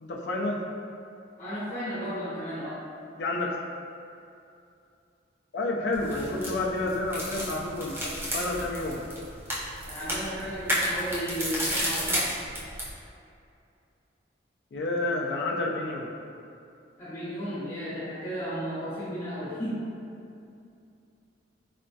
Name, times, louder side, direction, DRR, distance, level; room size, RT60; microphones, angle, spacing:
voice 1, 0.0-0.6 3.2-3.6 5.5-9.0 14.7-16.1, left 2 dB, 70° left, -1 dB, 0.4 m, -30 dB
voice 2, 1.4-2.8 6.1-6.3 9.8-12.3 17.0-19.9, equal, 45° left, -12 dB, 0.9 m, -34 dB
sound 1, 5.9-12.9, equal, 15° right, 0.6 m, -32 dB
4.0 x 2.2 x 2.6 m, 2.6 s
head